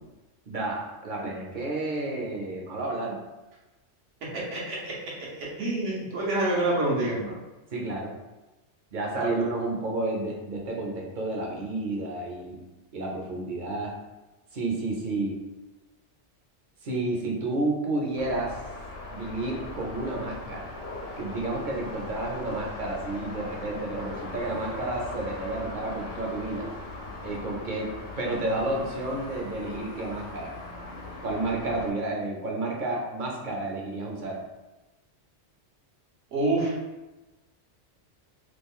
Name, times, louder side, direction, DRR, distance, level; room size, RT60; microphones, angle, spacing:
voice 1, 0.5-3.2 7.7-8.1 8.9-12.6 12.9-13.9 14.5-15.4 16.8-18.6 19.1-20.7 21.2-26.7 27.2-30.5 31.2-34.4, right 2 dB, 50° right, -1 dB, 0.8 m, -31 dB
voice 2, 4.3-7.4 9.1-9.4 36.3-36.7, right 2 dB, 80° right, -5 dB, 1.3 m, -27 dB
sound 1, 18.2-31.9, left 2 dB, 80° left, 1.0 m, -39 dB
3.1 x 2.4 x 3.6 m, 1.1 s
omnidirectional pair, 1.2 m